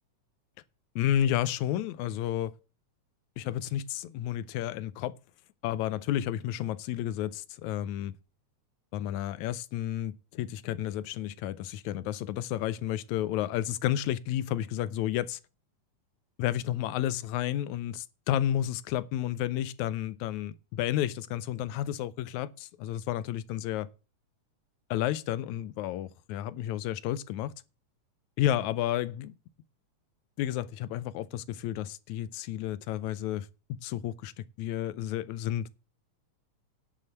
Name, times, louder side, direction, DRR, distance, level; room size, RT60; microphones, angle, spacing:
voice 1, 1.0-2.5 3.4-5.1 5.6-8.1 8.9-15.4 16.4-23.9 24.9-27.5 28.4-29.3 30.4-33.5 33.8-35.7, left 12 dB, 75° left, 2.0 m, -31 dB
10.5 x 6.5 x 6.7 m
omnidirectional pair, 3.6 m